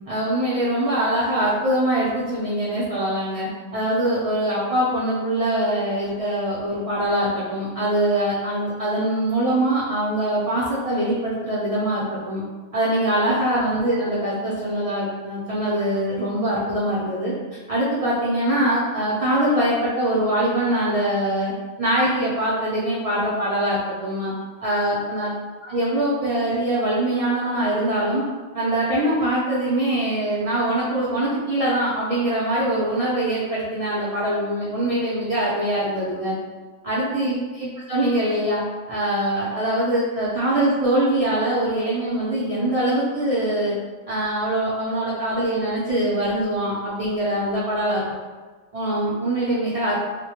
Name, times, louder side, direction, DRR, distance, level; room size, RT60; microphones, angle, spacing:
voice 1, 0.1-12.4 12.7-17.3 17.7-21.5 21.8-24.3 24.6-25.3 25.6-28.2 28.5-36.3 36.8-38.6 38.9-43.7 44.1-48.0 48.7-49.9, right 1 dB, 60° right, -8 dB, 0.3 m, -23 dB
2.1 x 2.1 x 2.8 m, 1.3 s
omnidirectional pair, 1.2 m